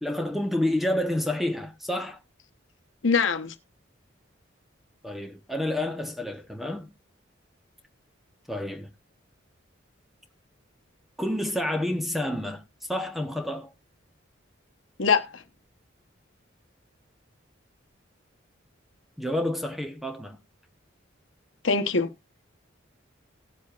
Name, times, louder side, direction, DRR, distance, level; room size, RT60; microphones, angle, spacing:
voice 1, 0.0-2.2 5.0-6.9 8.5-8.9 11.2-13.7 19.2-20.4, left 1 dB, ahead, 1.0 m, -29 dB
voice 2, 3.0-3.5 15.0-15.4 21.6-22.1, left 5 dB, 80° left, 1.1 m, -23 dB
18.0 x 7.5 x 2.4 m
head